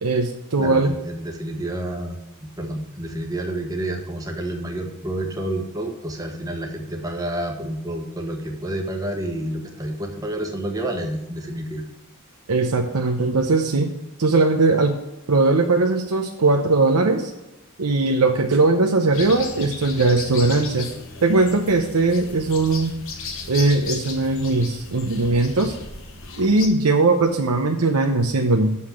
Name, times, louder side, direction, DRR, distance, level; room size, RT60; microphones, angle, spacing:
voice 1, 0.0-0.9 12.5-15.0 15.3-17.3 17.8-20.9 21.2-22.9 23.5-25.7 26.4-28.8, right 3 dB, 90° right, 3 dB, 0.8 m, -19 dB
voice 2, 0.6-2.2 2.6-11.8, right 1 dB, 15° right, 2 dB, 1.1 m, -29 dB
sound 1, 19.1-26.7, left 4 dB, 60° left, 1.2 m, -35 dB
6.7 x 5.7 x 7.3 m, 1.0 s
head